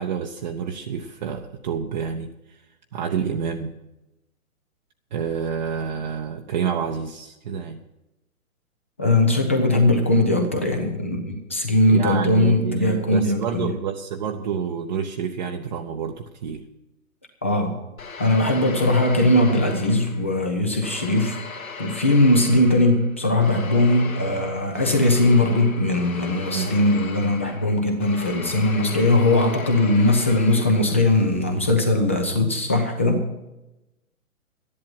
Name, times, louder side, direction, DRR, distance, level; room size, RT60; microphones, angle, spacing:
voice 1, 0.0-2.3 2.9-3.7 5.1-7.8 11.8-16.6 26.5-26.8, right 7 dB, 30° right, 3 dB, 0.7 m, -28 dB
voice 2, 9.0-13.7 17.4-17.8 18.2-21.4 21.8-33.3, left 1 dB, 10° left, 4 dB, 0.4 m, -20 dB
sound 1, 18.0-20.4 20.8-31.1, left 4 dB, 70° left, 2.1 m, -38 dB
13.0 x 11.0 x 5.7 m, 0.97 s
figure-of-eight pair, 120°, 43 cm